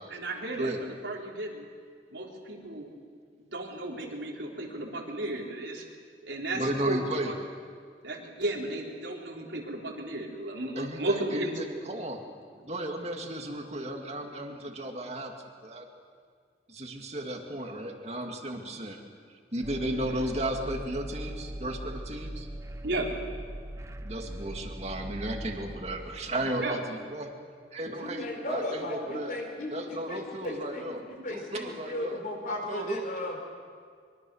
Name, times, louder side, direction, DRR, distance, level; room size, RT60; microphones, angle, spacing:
voice 1, 0.1-1.7 2.1-2.9 3.5-5.8 6.2-7.3 8.0-11.6 22.8-23.2 26.6-26.8, right 1 dB, 85° right, -2 dB, 4.3 m, -34 dB
voice 2, 6.5-7.3 10.8-12.2 12.6-15.3 15.6-15.8 16.7-19.0 19.5-22.5 24.0-27.3 27.7-29.3 29.7-32.2 32.7-33.0, right 1 dB, 35° right, 2 dB, 2.4 m, -34 dB
sound 1, 19.6-26.3, right 1 dB, 15° right, 0.8 m, -40 dB
voice 3, 27.9-33.4, left 1 dB, 45° left, 2 dB, 4.4 m, -36 dB
24.0 x 24.0 x 6.5 m, 2.1 s
head